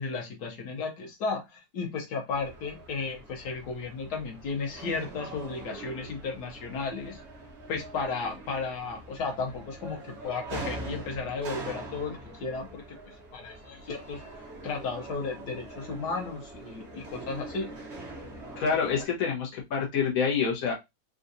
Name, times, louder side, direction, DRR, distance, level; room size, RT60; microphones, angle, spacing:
voice 1, 0.0-7.2 7.7-13.0 13.3-17.7, left 4 dB, 80° left, 1 dB, 1.5 m, -34 dB
sound 1, 2.3-19.1, right 2 dB, 50° right, 1.1 m, -43 dB
voice 2, 18.6-20.7, left 6 dB, 65° left, -1 dB, 1.4 m, -27 dB
3.7 x 2.4 x 2.6 m, 0.21 s
omnidirectional pair, 1.7 m